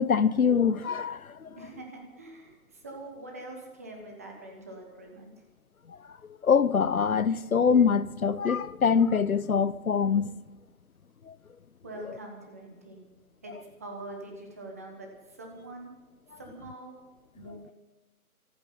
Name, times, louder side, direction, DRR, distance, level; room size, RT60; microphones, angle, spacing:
voice 1, 0.0-1.6 5.9-6.0 6.4-10.3 11.3-11.4, left 6 dB, 65° left, 0.9 m, -24 dB
voice 2, 1.5-5.4 11.8-13.1 13.4-15.9 16.4-16.9 17.3-17.7, right 2 dB, 10° right, 1.1 m, -44 dB
25.0 x 9.0 x 5.5 m
figure-of-eight pair, 165°, 45 cm